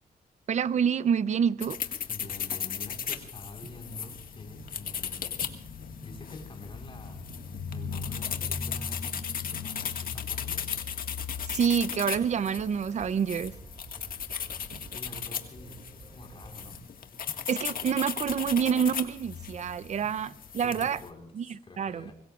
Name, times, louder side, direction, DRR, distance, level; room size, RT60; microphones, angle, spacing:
voice 1, 0.5-1.8 11.5-13.5 17.5-21.0 21.4-21.5 21.8-22.0, right 7 dB, 45° right, 0.6 m, -27 dB
sound 1, 1.6-21.1, left 7 dB, 65° left, 1.8 m, -36 dB
voice 2, 2.1-5.4 6.0-7.3 7.7-10.7 14.7-16.8 20.6-22.1, left 2 dB, 35° left, 4.6 m, -47 dB
sound 2, 3.6-4.1 5.4-5.8 7.2-7.9 9.5-10.2 12.1-12.7 14.7-15.0 17.3-17.8 19.9-20.3, right 3 dB, 70° right, 3.3 m, -52 dB
sound 3, 10.6-16.8, right 2 dB, 25° right, 2.8 m, -50 dB
25.0 x 21.5 x 2.4 m
cardioid pair, 95°, 16 cm